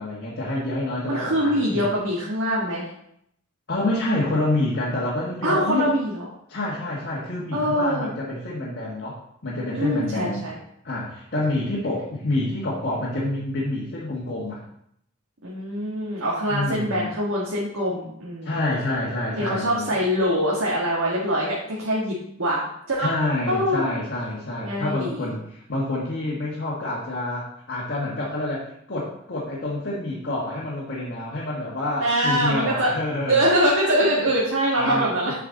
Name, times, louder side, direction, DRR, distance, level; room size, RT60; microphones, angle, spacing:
voice 1, 0.0-1.9 3.7-5.9 6.5-10.5 10.8-14.6 16.5-17.1 18.4-19.9 23.0-33.5 34.7-35.1, left 2 dB, 55° left, -6 dB, 1.5 m, -27 dB
voice 2, 1.1-2.9 5.4-6.3 7.5-8.1 9.7-10.6 15.4-18.6 19.3-23.1 23.5-23.9 24.6-25.3 32.0-32.9 33.3-35.3, equal, 90° right, -5 dB, 1.5 m, -24 dB
7.6 x 4.9 x 3.8 m, 0.73 s
head